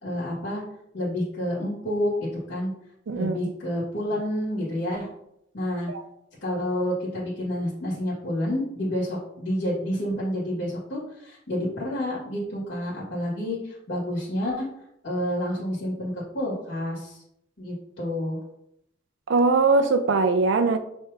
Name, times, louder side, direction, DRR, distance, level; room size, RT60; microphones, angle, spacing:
voice 1, 0.0-0.6 0.9-2.7 3.1-5.1 5.5-5.9 6.4-14.7 15.0-17.2 17.6-18.4, left 1 dB, 75° left, 1.8 m, -29 dB
voice 2, 3.1-3.5 5.9-6.0 19.3-20.8, right 3 dB, 75° right, 0.5 m, -21 dB
5.5 x 3.5 x 2.8 m
head